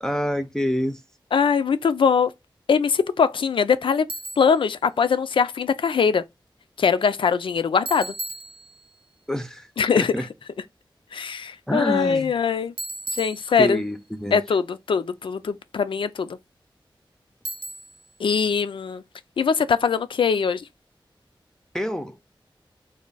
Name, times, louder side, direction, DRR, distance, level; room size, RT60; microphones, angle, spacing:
voice 1, 0.0-1.0 9.3-9.7 10.0-10.3 11.7-12.3 13.6-14.4 21.7-22.2, equal, 5° left, 0.4 m, -27 dB
voice 2, 1.3-2.3 2.7-4.1 4.4-6.2 6.8-8.1 9.8-10.3 11.1-12.7 13.1-13.8 14.3-16.4 18.2-19.0 19.4-20.7, left 6 dB, 80° left, 0.4 m, -22 dB
Bicycle, 4.1-4.6 7.9-9.1 12.8-14.0 17.4-18.1, right 1 dB, 85° right, 0.5 m, -35 dB
3.2 x 2.2 x 3.8 m
wide cardioid pair, 75°, 9 cm